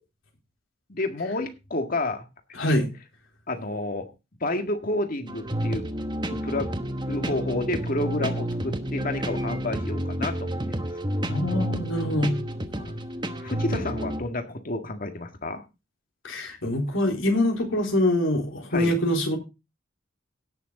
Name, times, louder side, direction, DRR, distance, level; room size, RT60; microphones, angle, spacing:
voice 1, 0.9-2.2 3.5-4.1 4.4-5.9 6.4-6.7 7.1-10.6 12.7-13.0 13.3-15.6 18.7-18.9, left 2 dB, 45° left, 1.8 m, -30 dB
voice 2, 2.5-2.9 11.3-12.4 16.2-19.4, left 1 dB, 75° left, 3.9 m, -24 dB
sound 1, 5.3-14.2, right 1 dB, 20° right, 1.1 m, -30 dB
17.5 x 6.7 x 3.9 m
head